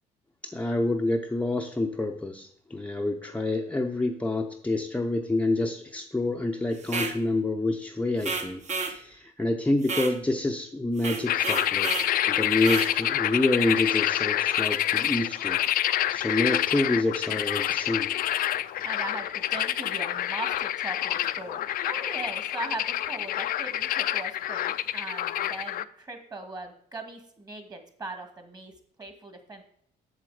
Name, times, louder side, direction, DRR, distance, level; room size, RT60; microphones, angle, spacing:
voice 1, 0.4-12.0 12.3-15.6 16.1-18.1, left 2 dB, 10° left, 2 dB, 0.7 m, -27 dB
sound 1, 6.8-7.2 8.2-9.0 9.8-10.2 11.0-12.1 12.6-12.9, right 4 dB, 45° right, 1.2 m, -31 dB
sound 2, 11.3-25.8, left 12 dB, 60° left, 0.5 m, -27 dB
voice 2, 18.8-28.7 29.0-29.6, right 2 dB, 25° right, 6 dB, 1.8 m, -39 dB
7.6 x 7.1 x 4.8 m, 0.66 s
cardioid pair, 110°, 17 cm